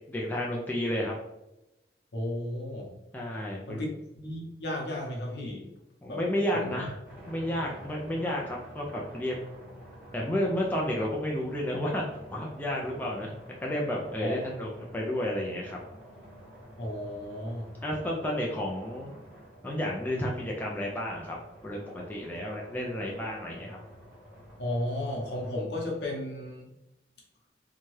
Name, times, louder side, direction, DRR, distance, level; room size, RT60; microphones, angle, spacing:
voice 1, 0.1-1.2 3.1-3.8 6.0-7.0 7.3-9.4 10.1-13.3 13.6-15.8 17.8-19.1 19.6-21.4 21.6-23.8, left 1 dB, 10° left, -3 dB, 0.3 m, -31 dB
voice 2, 2.1-2.9 3.7-5.7 6.1-6.2 6.5-6.8 14.2-14.4 16.8-17.7 24.6-26.7, left 1 dB, 65° left, -1 dB, 0.8 m, -34 dB
sound 1, 7.0-25.6, equal, 10° right, 0.9 m, -49 dB
2.7 x 2.3 x 3.1 m, 0.91 s
head